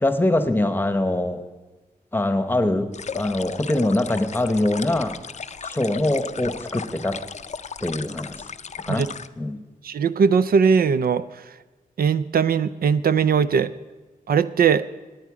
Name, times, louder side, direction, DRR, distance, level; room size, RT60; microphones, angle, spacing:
voice 1, 0.0-1.4 2.1-2.9 3.1-5.2 5.6-7.2 7.8-8.4 8.9-9.1 9.4-9.6, left 1 dB, 15° left, 10 dB, 0.9 m, -23 dB
sound 1, 2.9-9.3, left 6 dB, 50° left, 0.4 m, -36 dB
voice 2, 9.8-11.4 12.0-13.7 14.3-14.9, right 6 dB, 85° right, 15 dB, 0.4 m, -20 dB
18.0 x 9.0 x 4.9 m, 1.2 s
wide cardioid pair, 110°, 15 cm